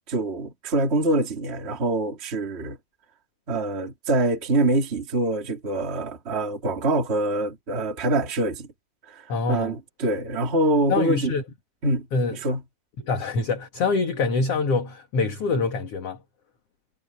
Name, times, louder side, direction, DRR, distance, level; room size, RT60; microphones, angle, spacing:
voice 1, 0.1-2.8 3.5-8.7 9.5-11.3 11.8-12.6, right 2 dB, 20° right, 2.2 m, -25 dB
voice 2, 9.3-9.7 10.9-11.4 12.1-12.4 13.0-16.2, left 4 dB, 50° left, 2.3 m, -25 dB
omnidirectional pair, 4.4 m